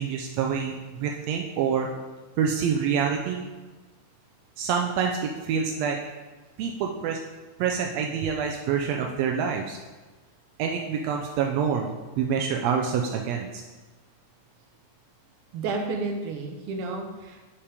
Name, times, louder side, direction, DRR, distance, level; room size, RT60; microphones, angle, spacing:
voice 1, 0.0-1.9 2.4-3.4 4.6-6.0 6.6-7.2 7.6-9.8 10.6-13.6, right 7 dB, 85° right, 1 dB, 1.5 m, -27 dB
voice 2, 15.5-17.5, right 3 dB, 65° right, 2 dB, 1.5 m, -31 dB
6.7 x 5.7 x 4.8 m, 1.3 s
omnidirectional pair, 3.6 m